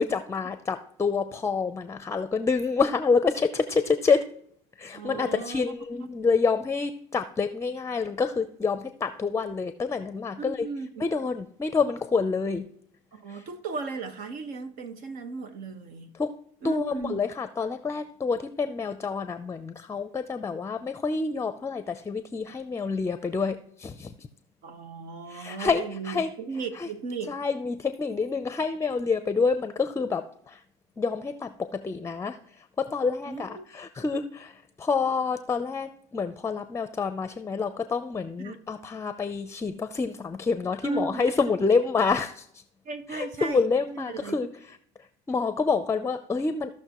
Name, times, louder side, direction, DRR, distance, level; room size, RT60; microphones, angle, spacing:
voice 1, 0.0-4.2 4.8-10.7 11.0-12.7 13.3-13.4 16.2-16.3 16.6-24.3 25.3-26.3 26.8-26.9 27.3-30.6 31.0-32.4 32.8-42.5 43.1-44.5 45.3-46.7, left 4 dB, 20° left, 0.6 m, -27 dB
voice 2, 4.9-6.1 10.4-11.1 13.1-16.1 16.6-17.3 24.6-27.3 33.2-33.7 38.4-38.6 40.8-41.5 42.8-44.3, right 4 dB, 65° right, 1.3 m, -36 dB
15.5 x 6.0 x 3.0 m
supercardioid pair, 95°, 15 cm